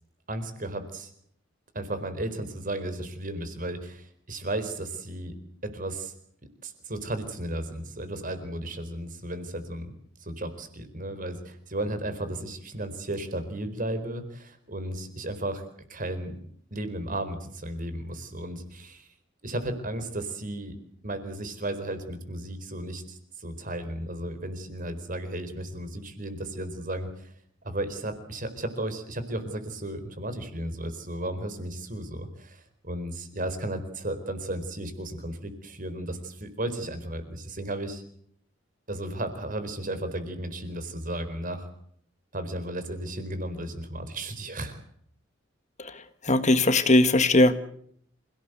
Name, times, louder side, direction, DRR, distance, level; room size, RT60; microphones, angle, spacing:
voice 1, 0.3-1.1 1.7-5.3 5.6-6.1 6.6-9.9 10.2-15.6 15.9-16.4 16.7-19.1 19.4-20.8 21.0-27.3 27.6-38.0 38.9-41.7 42.3-44.8, right 1 dB, 45° right, 10 dB, 4.4 m, -34 dB
voice 2, 46.3-47.6, left 2 dB, 40° left, 11 dB, 1.6 m, -19 dB
27.5 x 18.0 x 8.1 m, 0.66 s
head